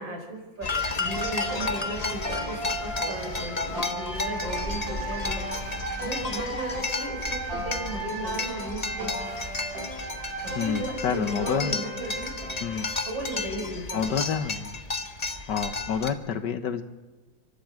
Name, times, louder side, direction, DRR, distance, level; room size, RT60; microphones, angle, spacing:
voice 1, 0.0-5.5 6.0-9.2 10.4-12.3 13.0-14.3, right 1 dB, 90° right, 1 dB, 5.9 m, -36 dB
sound 1, 0.6-16.1, left 3 dB, 25° left, 1.0 m, -33 dB
sound 2, 1.0-13.4, right 2 dB, 50° right, 6.8 m, -36 dB
voice 2, 10.6-11.8 12.6-12.9 13.9-14.8 15.5-16.8, left 7 dB, 70° left, 9 dB, 1.7 m, -28 dB
30.0 x 12.0 x 7.6 m, 1.3 s
omnidirectional pair, 2.0 m